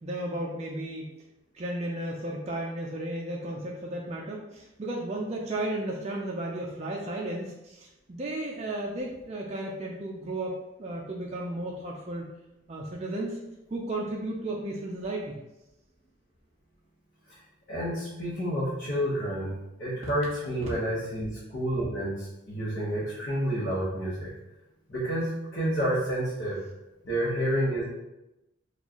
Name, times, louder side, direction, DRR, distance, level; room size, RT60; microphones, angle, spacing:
voice 1, 0.0-1.1 1.5-12.3 12.7-13.4 13.7-15.3, right 1 dB, 30° right, -2 dB, 0.4 m, -34 dB
voice 2, 17.7-19.5 19.8-24.3 24.9-26.6 27.0-27.8, equal, 55° left, -9 dB, 1.0 m, -29 dB
4.3 x 2.4 x 2.9 m, 0.95 s
head